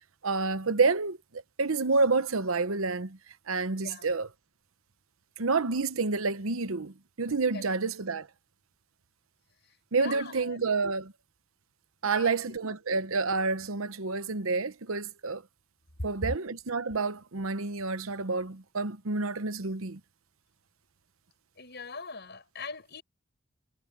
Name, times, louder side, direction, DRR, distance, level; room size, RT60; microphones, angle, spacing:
voice 1, 0.2-3.2 3.5-4.3 5.4-8.3 9.9-11.1 12.0-15.4 16.0-20.0, right 4 dB, 75° right, 0.9 m, -29 dB
voice 2, 3.8-4.1 7.5-7.7 9.9-10.6 12.0-12.4 21.6-23.0, left 4 dB, 50° left, 6.3 m, -42 dB
head